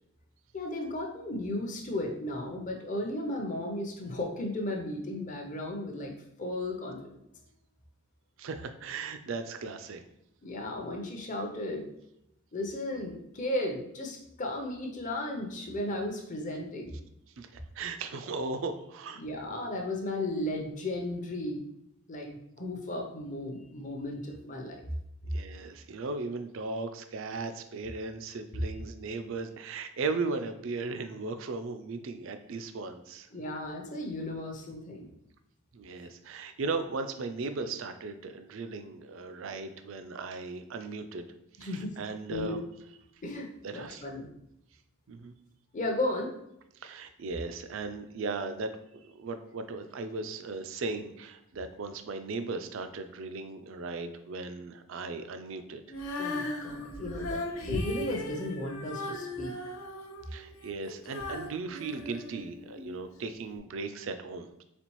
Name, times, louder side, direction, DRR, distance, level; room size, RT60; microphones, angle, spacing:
voice 1, 0.5-6.1 6.4-7.2 10.4-11.9 12.5-17.0 19.2-21.6 22.1-24.8 33.3-35.1 41.6-42.0 42.3-42.6 43.2-44.2 45.7-46.3 56.2-59.5, left 1 dB, 35° left, 1 dB, 0.6 m, -35 dB
voice 2, 8.4-10.0 17.4-19.2 25.3-33.3 35.7-41.3 41.6-42.6 43.6-44.1 45.1-45.3 46.7-55.8 60.3-64.6, right 3 dB, 65° right, 9 dB, 0.4 m, -37 dB
Female singing, 55.9-62.9 63.6-63.7, left 1 dB, 75° left, 0.7 m, -37 dB
4.1 x 3.7 x 3.0 m, 0.80 s
head